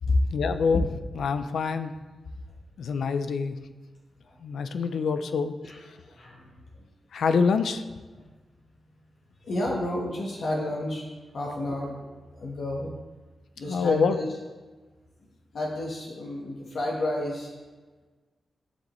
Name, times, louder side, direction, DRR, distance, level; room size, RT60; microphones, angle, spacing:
voice 1, 0.3-0.9 1.2-1.9 2.8-3.6 4.4-5.5 7.1-7.8 13.7-14.2, left 5 dB, 85° left, 10 dB, 0.4 m, -25 dB
voice 2, 5.6-6.9 8.2-8.3 9.4-12.9 13.6-14.3 15.5-17.5, left 1 dB, 65° left, -2 dB, 1.3 m, -31 dB
13.0 x 5.2 x 3.1 m, 1.3 s
wide cardioid pair, 105°, 0 cm